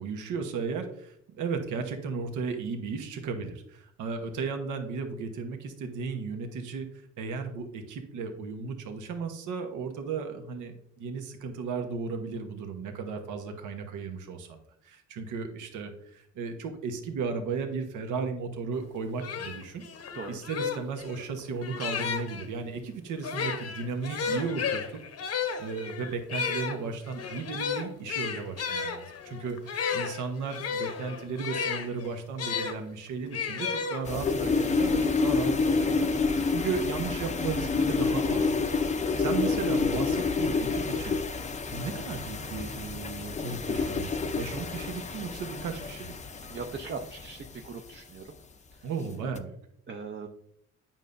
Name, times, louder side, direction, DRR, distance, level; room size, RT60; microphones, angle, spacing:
voice 1, 0.0-25.0 25.3-41.2 41.7-46.1 48.8-49.5, right 5 dB, 80° right, 5 dB, 1.1 m, -35 dB
sound 1, 18.8-18.9 19.2-22.5 23.2-32.8 33.3-34.4, left 6 dB, 55° left, 0.9 m, -33 dB
sound 2, 34.1-47.9 49.1-49.4, left 4 dB, 25° left, 0.5 m, -29 dB
voice 2, 46.5-48.2 49.9-50.3, right 4 dB, 40° right, 3 dB, 0.6 m, -39 dB
9.0 x 5.5 x 2.6 m, 0.70 s
cardioid pair, 90°, 30 cm